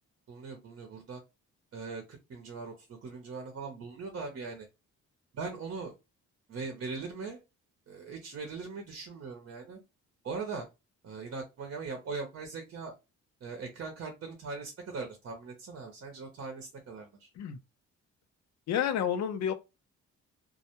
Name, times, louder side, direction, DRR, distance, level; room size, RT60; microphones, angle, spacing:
voice 1, 0.3-1.2 1.7-4.7 5.3-5.9 6.5-7.4 7.9-9.8 10.2-10.7 11.0-12.9 13.4-17.3, right 4 dB, 50° right, 0.7 m, -40 dB
voice 2, 18.7-19.5, left 9 dB, 65° left, 0.5 m, -29 dB
2.1 x 2.1 x 2.9 m
cardioid pair, 90°, 30 cm